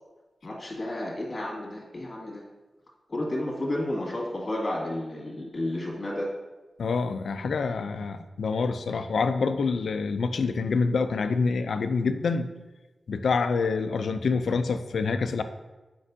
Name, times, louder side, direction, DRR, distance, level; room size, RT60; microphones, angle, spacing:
voice 1, 0.4-2.4 3.1-6.3, left 1 dB, 30° left, -3 dB, 2.0 m, -31 dB
voice 2, 6.8-12.5 13.1-15.4, left 4 dB, 75° left, 9 dB, 0.4 m, -26 dB
8.3 x 5.3 x 2.7 m, 1.2 s
wide cardioid pair, 170°, 0 cm